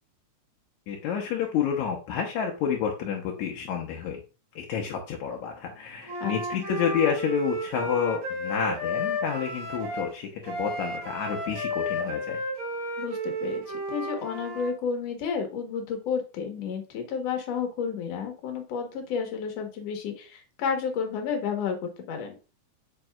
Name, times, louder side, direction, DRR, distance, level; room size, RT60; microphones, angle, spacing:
voice 1, 0.9-4.2 4.6-12.4, left 8 dB, 80° left, 1 dB, 2.2 m, -29 dB
Wind instrument woodwind instrument, 6.1-10.1 10.4-14.7, left 1 dB, 75° right, 3.2 m, -32 dB
voice 2, 6.2-6.6 13.0-22.3, left 6 dB, 65° left, 4 dB, 2.3 m, -31 dB
7.8 x 5.2 x 2.3 m, 0.33 s
omnidirectional pair, 3.4 m